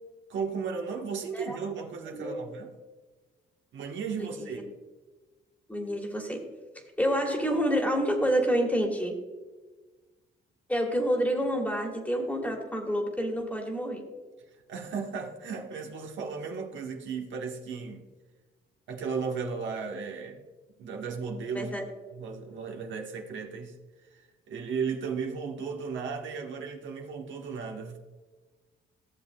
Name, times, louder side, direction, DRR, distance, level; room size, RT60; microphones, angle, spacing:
voice 1, 0.3-2.7 3.7-4.6 14.7-18.1 18.9-20.4 20.8-21.7 22.1-23.8 24.1-24.2 24.5-28.0, right 5 dB, 70° right, 2 dB, 1.2 m, -35 dB
voice 2, 2.1-2.4 4.2-4.6 5.7-6.4 7.0-9.1 10.7-14.0 21.5-21.8, equal, 10° left, 2 dB, 1.7 m, -28 dB
14.5 x 7.1 x 2.2 m, 1.3 s
cardioid pair, 90°, 20 cm